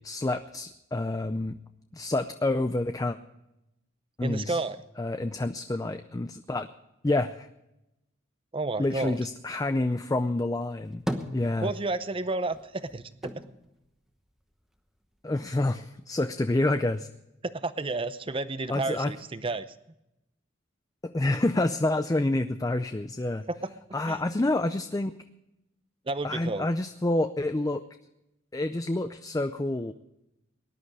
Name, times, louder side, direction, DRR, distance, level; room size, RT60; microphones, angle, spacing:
voice 1, 0.0-1.6 1.9-3.2 4.2-4.6 5.0-6.7 7.0-7.5 8.8-11.0 11.3-11.7 15.2-17.1 18.7-19.1 21.0-23.5 23.9-25.1 26.2-27.8 28.5-29.9, left 2 dB, 20° left, 9 dB, 0.5 m, -28 dB
voice 2, 4.2-4.8 8.5-9.2 11.6-13.3 17.4-19.7 23.5-23.7 24.1-24.2 26.1-26.7, right 3 dB, 25° right, 13 dB, 0.7 m, -31 dB
sound 1, 10.6-12.1 12.4-14.8 15.2-16.1, equal, ahead, 1.0 m, -38 dB
19.0 x 11.5 x 4.8 m, 0.89 s
head